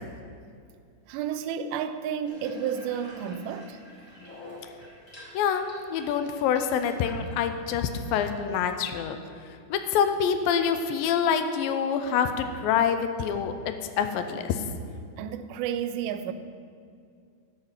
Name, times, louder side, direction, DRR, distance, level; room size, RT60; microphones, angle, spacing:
voice 1, 1.1-3.8 15.2-16.3, right 8 dB, 85° right, 2.4 m, -31 dB
Water tap faucet / Bathtub (filling or washing), 2.2-8.7, left 1 dB, 15° left, 2.1 m, -47 dB
voice 2, 5.3-9.2 9.7-14.6, left 7 dB, 80° left, 2.3 m, -26 dB
11.5 x 5.6 x 5.7 m
omnidirectional pair, 4.1 m